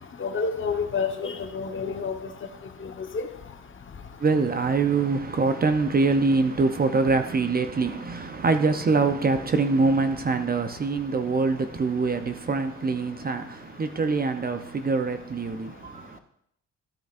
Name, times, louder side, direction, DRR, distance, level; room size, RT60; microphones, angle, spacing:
voice 1, 0.2-2.1 2.8-3.3, left 5 dB, 40° left, 1.2 m, -29 dB
voice 2, 4.2-16.2, right 4 dB, 30° right, 0.7 m, -24 dB
13.0 x 9.1 x 2.6 m
cardioid pair, 90°, 30 cm